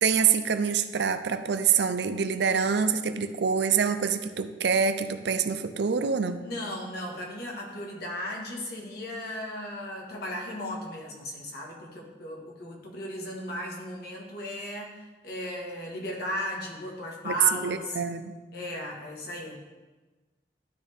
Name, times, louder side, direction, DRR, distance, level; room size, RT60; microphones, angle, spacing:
voice 1, 0.0-6.4 17.2-17.3 17.6-18.4, right 6 dB, 70° right, 10 dB, 0.5 m, -26 dB
voice 2, 6.4-18.0 18.5-19.6, left 1 dB, 65° left, -1 dB, 1.6 m, -36 dB
12.0 x 4.2 x 3.5 m, 1.2 s
head